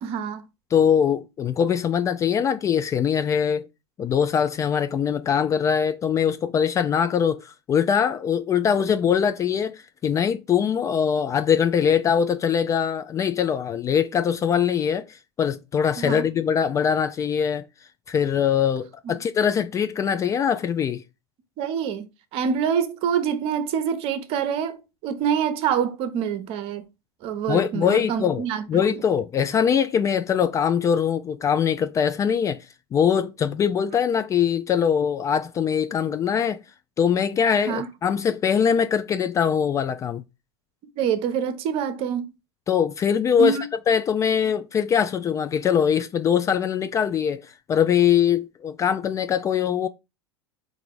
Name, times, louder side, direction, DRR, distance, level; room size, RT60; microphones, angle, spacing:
voice 1, 0.0-0.4 16.0-16.3 21.6-26.9 27.2-29.0 37.7-37.9 41.0-42.3 43.4-43.6, right 7 dB, 45° right, 0.8 m, -26 dB
voice 2, 0.7-3.7 4.0-17.6 18.1-21.0 27.5-32.7 32.9-36.6 37.0-40.2 42.7-43.6 43.9-49.9, left 7 dB, 25° left, 0.3 m, -22 dB
3.8 x 2.6 x 4.5 m
figure-of-eight pair, 85°, 14 cm